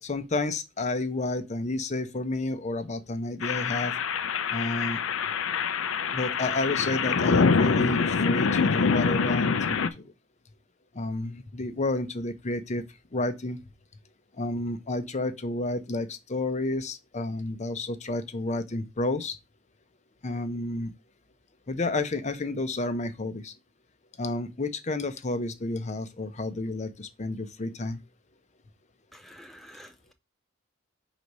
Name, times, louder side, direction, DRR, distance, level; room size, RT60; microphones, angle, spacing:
voice 1, 0.0-4.0 4.5-5.0 6.1-10.1 10.9-12.8 13.1-13.6 14.3-19.4 20.2-20.9 21.7-23.5 24.2-28.0, left 2 dB, 35° left, 0.7 m, -31 dB
sound 1, 3.4-9.9, left 5 dB, 85° left, 0.5 m, -25 dB
voice 2, 29.1-30.1, equal, ahead, 0.3 m, -49 dB
4.7 x 4.1 x 5.3 m
head